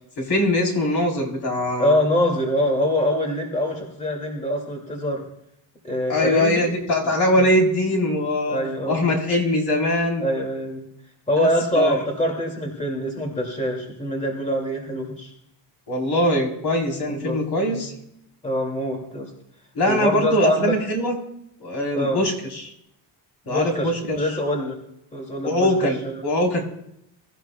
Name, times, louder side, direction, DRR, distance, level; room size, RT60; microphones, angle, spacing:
voice 1, 0.2-2.0 6.1-8.6 8.9-10.3 11.4-11.5 11.7-12.0 15.9-17.9 19.7-21.2 21.6-22.7 23.5-24.3 25.4-26.6, left 1 dB, 55° left, 1 dB, 3.8 m, -22 dB
voice 2, 1.8-5.2 5.8-6.7 7.0-7.1 8.5-9.1 10.2-10.9 11.3-15.3 17.1-17.4 17.7-17.9 18.4-19.3 19.8-20.8 21.9-22.2 23.4-24.8 25.1-26.2, equal, 15° left, 1 dB, 2.4 m, -24 dB
22.5 x 14.0 x 2.3 m, 0.79 s
cardioid pair, 155°, 45 cm